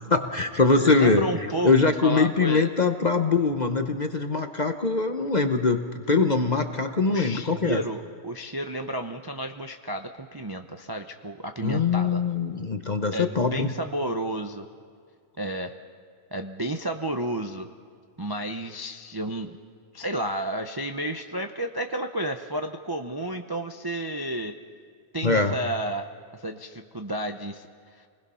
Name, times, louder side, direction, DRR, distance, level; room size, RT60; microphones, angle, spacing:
voice 1, 0.1-1.3 1.6-7.8 11.6-13.7 25.2-25.6, left 4 dB, 35° left, 6 dB, 0.9 m, -23 dB
voice 2, 0.8-1.7 2.0-2.7 7.0-12.2 13.1-14.7 15.4-15.7 16.3-17.7 18.2-19.6 19.9-24.6 25.1-26.1 26.3-27.7 27.9-28.0, right 1 dB, 25° right, 4 dB, 0.6 m, -31 dB
28.5 x 20.5 x 5.7 m, 2.1 s
omnidirectional pair, 1.7 m